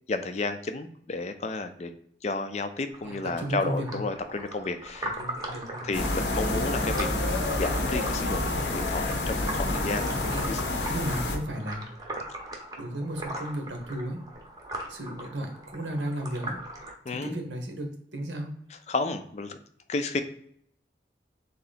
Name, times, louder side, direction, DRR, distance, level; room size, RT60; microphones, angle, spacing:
voice 1, 0.1-1.9 2.2-5.1 5.8-10.1 10.5-10.9 17.1-17.4 18.9-19.6 19.9-20.2, left 3 dB, 40° left, 8 dB, 0.4 m, -32 dB
sound 1, 2.9-16.9, right 1 dB, 20° right, 0.7 m, -40 dB
voice 2, 3.0-4.0 5.2-5.9 10.3-10.6 10.9-11.9 12.8-14.2 14.9-16.6 17.1-18.5, right 1 dB, 90° right, 4 dB, 1.0 m, -34 dB
sound 2, 5.9-11.4, left 2 dB, 80° left, 0.8 m, -28 dB
3.7 x 2.8 x 4.0 m, 0.67 s
head